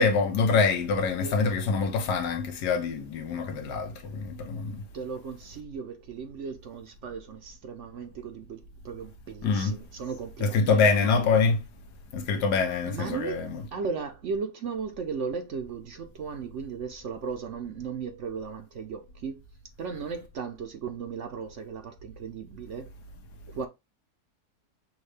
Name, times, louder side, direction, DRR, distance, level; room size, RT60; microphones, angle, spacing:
voice 1, 0.0-4.8 9.4-9.8 10.4-11.6 12.1-13.6, left 4 dB, 85° left, 1.5 m, -25 dB
voice 2, 4.9-11.3 12.8-19.4 19.8-22.9 23.5-23.7, right 5 dB, 60° right, 0.9 m, -36 dB
6.4 x 2.4 x 3.2 m
omnidirectional pair, 1.7 m